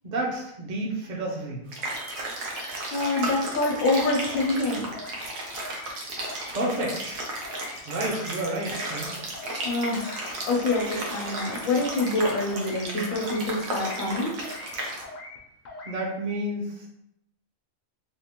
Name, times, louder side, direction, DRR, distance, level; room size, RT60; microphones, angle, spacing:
voice 1, 0.0-1.6 6.5-7.3 7.9-9.1 15.9-16.9, right 1 dB, 40° right, -3 dB, 0.8 m, -30 dB
sound 1, 1.7-15.0, right 2 dB, 85° right, 1.2 m, -34 dB
sound 2, 1.9-2.2 2.5-3.3 3.5-4.0 4.3-4.6 4.9-5.3 5.5-5.9 6.2-6.5 6.8-7.2 7.4-7.8 8.1-8.4 8.7-9.1 9.3-9.7 10.0-10.3 10.6-11.0 11.2-11.6 11.9-12.2 12.5-12.8 13.1-13.5 13.8-14.1 14.4-14.7 15.0-15.4 15.7-16.0, left 2 dB, 55° left, 0.5 m, -42 dB
voice 2, 2.9-4.9 9.6-14.3, left 2 dB, 75° left, -1 dB, 1.1 m, -26 dB
3.5 x 2.5 x 2.9 m, 0.76 s
omnidirectional pair, 1.4 m